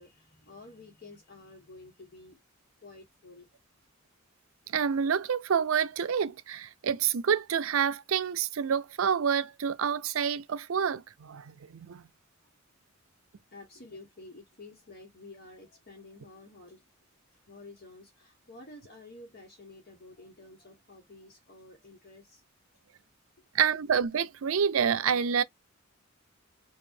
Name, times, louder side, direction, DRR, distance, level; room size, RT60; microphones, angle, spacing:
voice 1, 0.0-2.4 2.8-3.5 13.5-16.8 17.5-22.4 23.4-23.5, left 2 dB, 50° left, 1.4 m, -51 dB
voice 2, 4.7-12.0 23.5-25.4, right 7 dB, 75° right, 0.5 m, -28 dB
4.8 x 2.6 x 2.6 m
head